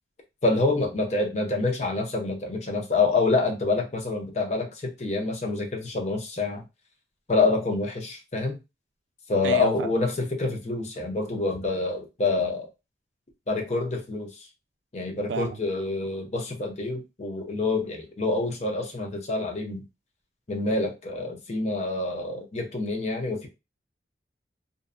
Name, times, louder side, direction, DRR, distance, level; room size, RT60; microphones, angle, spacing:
voice 1, 0.4-6.6 7.3-8.6 9.3-12.7 13.5-14.3 14.9-19.8 20.5-23.5, left 3 dB, 40° left, 0.5 m, -27 dB
voice 2, 9.4-10.0 15.3-15.6, right 5 dB, 90° right, 0.3 m, -31 dB
2.5 x 2.1 x 2.4 m
head